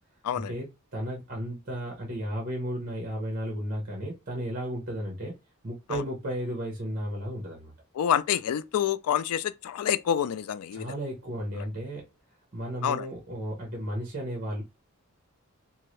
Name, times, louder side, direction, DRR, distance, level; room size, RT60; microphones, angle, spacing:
voice 1, 0.3-5.4 5.6-7.7 10.7-12.1 12.5-14.6, equal, 40° right, 0.9 m, -34 dB
voice 2, 8.0-10.9 11.6-11.7 12.8-13.1, left 9 dB, 85° left, 0.3 m, -27 dB
2.7 x 2.5 x 3.1 m
head